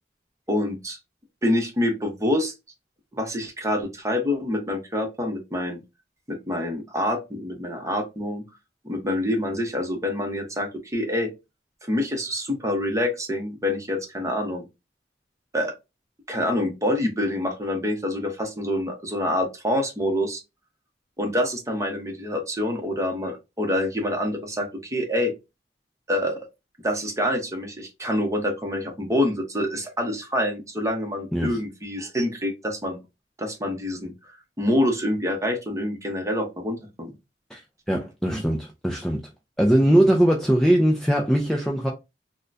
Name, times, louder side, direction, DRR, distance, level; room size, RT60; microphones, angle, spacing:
voice 1, 0.5-1.0 1.4-2.5 3.1-5.8 6.3-8.4 8.8-11.3 11.9-14.6 15.5-15.7 16.3-20.4 21.2-25.3 26.1-26.4 26.8-33.0 33.4-34.1 34.6-37.1, left 1 dB, 20° right, 0.8 m, -26 dB
voice 2, 37.9-39.2 39.6-41.9, right 1 dB, ahead, 0.3 m, -20 dB
3.6 x 2.1 x 2.5 m
head